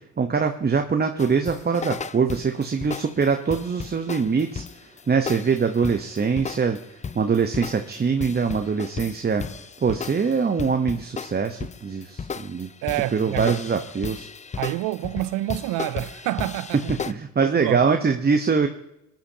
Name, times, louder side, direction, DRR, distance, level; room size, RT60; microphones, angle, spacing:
voice 1, 0.0-9.5 9.8-12.7 13.1-14.3 16.7-18.7, right 5 dB, 30° right, 1.0 m, -23 dB
sound 1, 1.2-17.1, left 6 dB, 20° left, 0.5 m, -35 dB
voice 2, 12.8-13.8 14.6-16.9 17.4-17.8, right 17 dB, 75° right, 0.6 m, -28 dB
20.5 x 10.5 x 2.9 m
hypercardioid pair, 55°, 33 cm